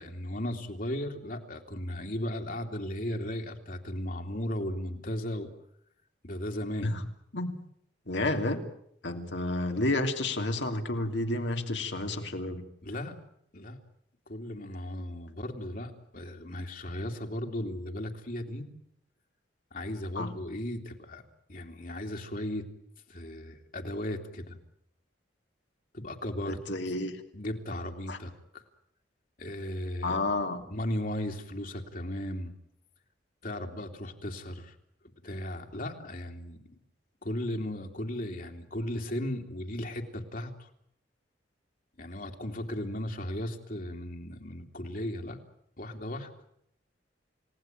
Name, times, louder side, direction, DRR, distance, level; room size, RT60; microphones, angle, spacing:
voice 1, 0.0-5.5 6.2-6.9 12.8-13.2 13.5-13.8 14.3-18.7 19.7-21.2 21.5-22.6 23.1-24.6 25.9-26.6 27.3-28.6 29.4-30.2 30.7-32.5 33.4-34.7 35.2-36.6 37.2-40.7 42.0-45.4 45.8-46.3, left 1 dB, 50° left, 3 dB, 2.9 m, -36 dB
voice 2, 8.1-8.6 9.0-12.6 20.1-20.3 26.5-27.2 28.1-28.2 30.0-30.6, left 2 dB, 75° left, 4 dB, 3.0 m, -30 dB
29.5 x 18.0 x 9.1 m, 0.74 s
head